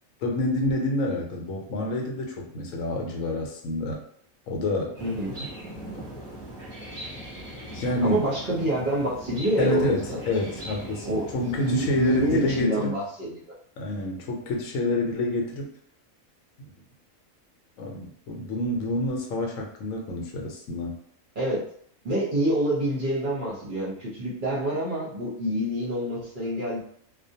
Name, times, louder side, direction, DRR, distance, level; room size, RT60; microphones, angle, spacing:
voice 1, 0.2-4.0 4.5-5.0 5.4-5.5 7.7-8.2 9.6-13.0 13.8-15.7 16.6-16.7 17.8-21.0, left 2 dB, 75° left, 0 dB, 1.0 m, -28 dB
sound 1, 4.9-12.6, right 1 dB, 5° right, 0.9 m, -39 dB
voice 2, 5.0-5.4 8.0-10.2 11.0-13.5 21.4-21.6 22.0-26.8, right 1 dB, 50° right, -5 dB, 0.7 m, -27 dB
2.4 x 2.1 x 2.7 m, 0.63 s
omnidirectional pair, 1.4 m